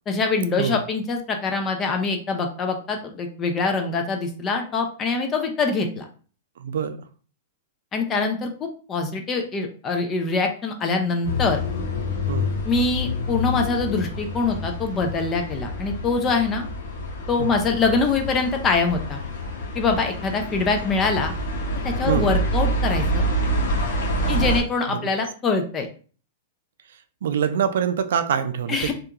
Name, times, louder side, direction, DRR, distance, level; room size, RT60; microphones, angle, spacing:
voice 1, 0.1-6.0 7.9-11.6 12.6-16.7 17.3-19.2 19.7-21.3 21.8-23.2 24.3-25.9 28.7-28.9, left 4 dB, 20° left, 0.3 m, -24 dB
voice 2, 6.6-7.0 12.3-12.5 17.4-17.5 22.1-22.3 24.2-24.6 24.9-25.1 27.2-28.9, right 8 dB, 80° right, 0.3 m, -25 dB
sound 1, 11.2-24.6, equal, 85° left, 0.8 m, -27 dB
2.3 x 2.3 x 2.8 m
supercardioid pair, 165°, 0 cm